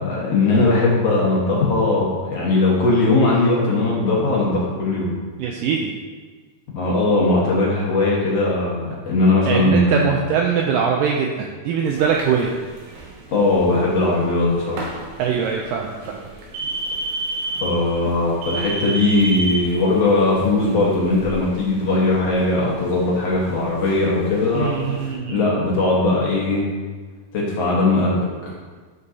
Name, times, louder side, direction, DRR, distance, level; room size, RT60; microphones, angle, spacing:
voice 1, 0.0-5.1 6.7-10.1 13.3-15.1 17.6-26.7 27.3-28.5, left 2 dB, 60° left, -5 dB, 1.8 m, -19 dB
voice 2, 5.4-5.9 9.5-12.5 15.2-16.3 24.5-25.4, right 7 dB, 90° right, 1 dB, 1.9 m, -22 dB
sound 1, 11.8-25.1, right 2 dB, 75° right, 2.8 m, -33 dB
11.5 x 5.4 x 2.7 m, 1.4 s
omnidirectional pair, 4.5 m